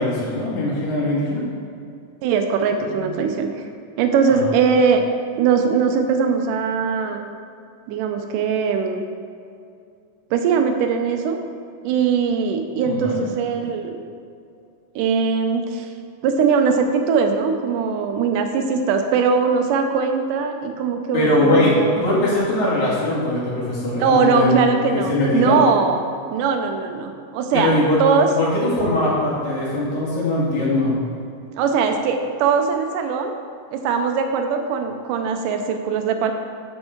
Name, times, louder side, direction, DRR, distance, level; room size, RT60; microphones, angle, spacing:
voice 1, 0.0-1.4 4.3-4.5 12.8-13.2 21.1-21.7 22.0-25.6 27.5-28.0 28.3-31.0, left 1 dB, 65° left, -8 dB, 3.4 m, -21 dB
voice 2, 2.2-3.6 4.0-5.0 5.4-7.3 7.9-9.0 10.3-11.4 11.8-14.0 15.0-15.9 16.2-22.0 24.0-26.0 26.3-28.3 31.6-33.3 33.7-36.3, right 5 dB, 80° right, 5 dB, 2.2 m, -20 dB
8.8 x 5.4 x 4.5 m, 2.4 s
omnidirectional pair, 3.7 m